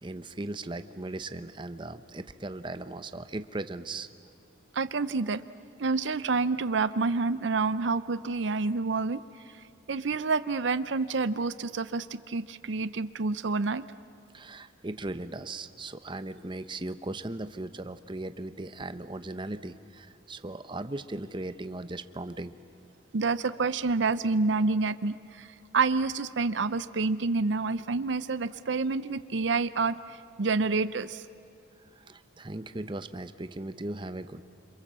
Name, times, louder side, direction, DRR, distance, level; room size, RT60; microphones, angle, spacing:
voice 1, 0.0-4.1 14.3-22.5 31.9-34.4, right 2 dB, 25° right, 11 dB, 0.8 m, -38 dB
voice 2, 4.7-5.4 5.8-9.2 9.9-13.8 23.1-25.5 25.7-31.2, right 4 dB, 65° right, 14 dB, 0.6 m, -28 dB
28.5 x 26.5 x 7.5 m, 2.6 s
head